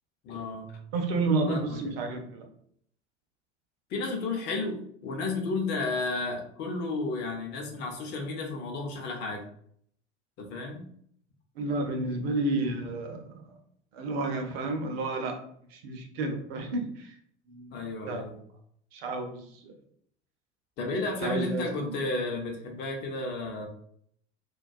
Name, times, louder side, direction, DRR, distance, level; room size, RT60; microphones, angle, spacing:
voice 1, 0.2-0.7 1.5-2.0 3.9-9.4 10.4-10.9 17.7-18.4 20.8-23.7, left 3 dB, 30° left, 1 dB, 0.5 m, -32 dB
voice 2, 0.9-2.5 11.6-13.2 13.9-15.3 15.7-17.2 17.5-17.7 18.1-18.3 18.9-19.8 21.2-22.0, right 2 dB, 60° right, 4 dB, 0.6 m, -31 dB
2.2 x 2.1 x 2.6 m, 0.65 s
figure-of-eight pair, 70°, 35 cm